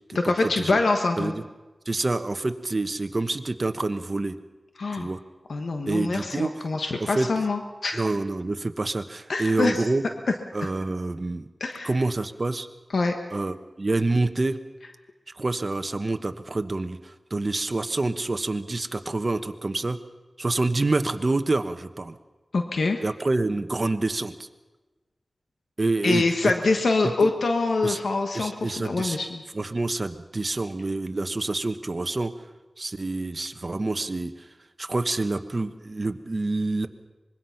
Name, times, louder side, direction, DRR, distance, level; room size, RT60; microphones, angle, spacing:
voice 1, 0.1-1.3 4.8-5.1 5.5-8.1 9.3-9.9 10.6-10.7 11.6-11.9 12.9-13.1 22.5-23.0 26.0-29.4, left 3 dB, 80° left, 4 dB, 1.3 m, -25 dB
voice 2, 1.9-4.4 4.9-5.2 5.9-6.5 7.1-7.3 7.9-10.0 10.5-11.4 11.8-12.7 13.3-14.6 15.4-20.0 20.4-22.1 23.0-24.3 25.8-26.5 27.8-28.0 28.3-29.2 29.5-32.3 32.8-34.3 34.8-36.9, right 2 dB, 40° right, 8 dB, 1.1 m, -27 dB
25.0 x 21.5 x 5.8 m, 1.2 s
wide cardioid pair, 80°, 0 cm